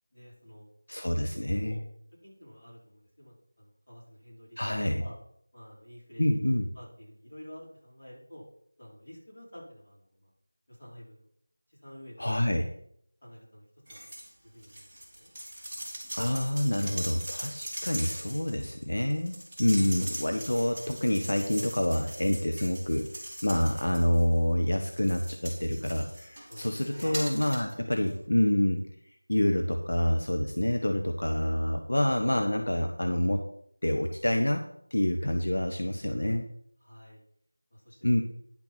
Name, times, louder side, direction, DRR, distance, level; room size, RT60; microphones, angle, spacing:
voice 1, 0.1-0.7 1.3-1.8 2.2-4.6 5.0-5.2 5.5-6.4 6.7-8.4 8.8-10.3 10.7-11.3 11.7-12.4 13.2-14.0 14.4-15.3 19.7-19.9 26.5-27.3 36.8-37.2 37.7-38.2, equal, 35° left, -6 dB, 4.9 m, -49 dB
voice 2, 0.9-1.8 4.6-5.0 6.2-6.7 12.2-12.6 16.1-23.1 23.4-28.8 29.3-33.4 33.8-34.6 34.9-36.5 38.0-38.2, left 1 dB, 75° left, 4 dB, 1.2 m, -27 dB
sound 1, 13.9-14.3 14.6-24.4 24.8-27.7 28.1-28.2, right 1 dB, 5° right, 2.6 m, -41 dB
10.5 x 6.2 x 5.8 m, 0.69 s
figure-of-eight pair, 175°, 0 cm